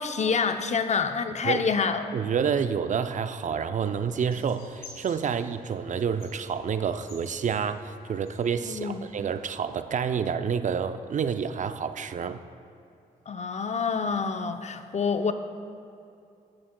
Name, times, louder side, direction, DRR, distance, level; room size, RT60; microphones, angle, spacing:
voice 1, 0.0-2.0 8.6-9.0 13.3-15.3, left 5 dB, 45° left, 8 dB, 0.6 m, -27 dB
voice 2, 2.1-12.4, right 7 dB, 50° right, 10 dB, 0.5 m, -28 dB
sound 1, 4.3-9.5, left 3 dB, 70° left, 2.1 m, -51 dB
13.5 x 8.6 x 2.2 m, 2.6 s
supercardioid pair, 55°, 16 cm